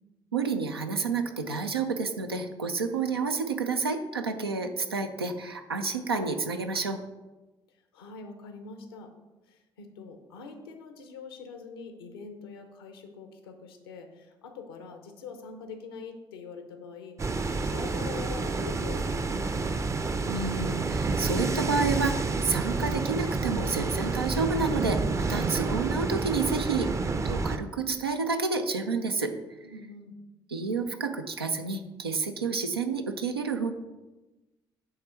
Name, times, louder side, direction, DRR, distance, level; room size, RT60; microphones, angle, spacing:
voice 1, 0.3-7.0 20.3-26.9 27.2-29.3 30.5-33.7, right 4 dB, 90° right, 6 dB, 0.4 m, -30 dB
voice 2, 7.7-9.1 9.4-19.8 29.6-30.2, left 5 dB, 80° left, 6 dB, 0.7 m, -44 dB
sound 1, 17.2-27.6, right 3 dB, 25° right, 0.5 m, -29 dB
7.8 x 3.6 x 4.5 m, 1.1 s
figure-of-eight pair, 45°, 12 cm